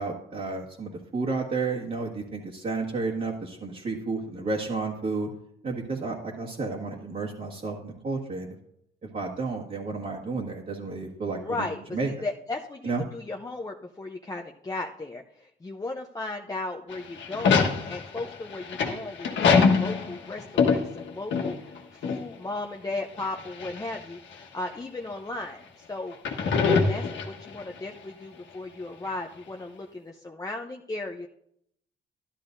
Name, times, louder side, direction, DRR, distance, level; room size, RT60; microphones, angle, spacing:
voice 1, 0.0-5.3 5.6-8.5 9.1-11.7 11.9-12.1 12.8-13.0, right 3 dB, 45° right, -5 dB, 1.7 m, -31 dB
voice 2, 11.3-26.2 26.5-31.3, left 2 dB, 20° left, 1 dB, 0.7 m, -36 dB
sound 1, 16.9-21.8 22.0-22.2 23.2-24.0 24.7-24.8 26.1-27.6, left 5 dB, 70° left, 1.4 m, -24 dB
12.5 x 11.5 x 2.6 m, 0.74 s
cardioid pair, 90°, 20 cm